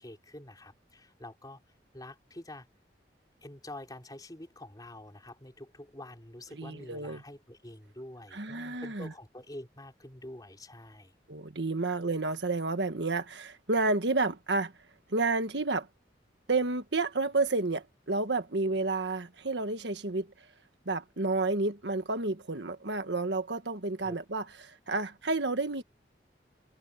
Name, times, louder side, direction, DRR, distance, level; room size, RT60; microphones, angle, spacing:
voice 1, 0.0-1.6 1.9-2.7 3.4-11.1 24.0-24.2, left 1 dB, 20° left, 4.0 m, -47 dB
voice 2, 6.5-7.2 8.3-9.1 11.3-14.7 15.1-15.9 16.5-20.5 20.8-25.8, right 3 dB, 85° right, 1.5 m, -30 dB
head